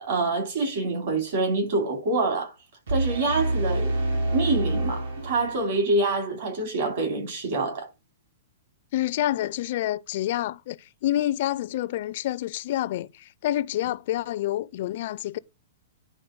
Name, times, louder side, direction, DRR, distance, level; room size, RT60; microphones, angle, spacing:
voice 1, 0.0-2.5 2.9-3.9 4.3-7.9, right 3 dB, 50° right, 3.3 m, -26 dB
sound 1, 2.9-5.9, right 1 dB, 80° right, 3.3 m, -27 dB
voice 2, 8.9-15.4, left 13 dB, 45° left, 0.4 m, -28 dB
10.0 x 3.8 x 6.1 m
hypercardioid pair, 165°, 0 cm